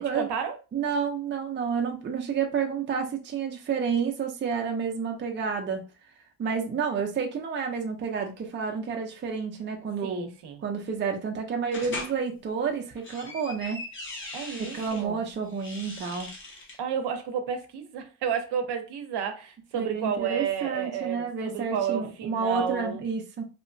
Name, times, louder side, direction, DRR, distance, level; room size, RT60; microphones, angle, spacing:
voice 1, 0.0-0.6 10.0-10.6 14.3-15.2 16.8-23.0, right 7 dB, 65° right, 0.7 m, -31 dB
voice 2, 0.7-5.8 6.4-10.3 10.6-13.8 14.6-16.3 19.7-23.4, right 6 dB, 25° right, 0.5 m, -30 dB
sound 1, 11.7-12.1 12.8-15.0 15.5-16.8, left 2 dB, 25° left, 0.7 m, -40 dB
2.8 x 2.1 x 2.5 m
cardioid pair, 115°, 44 cm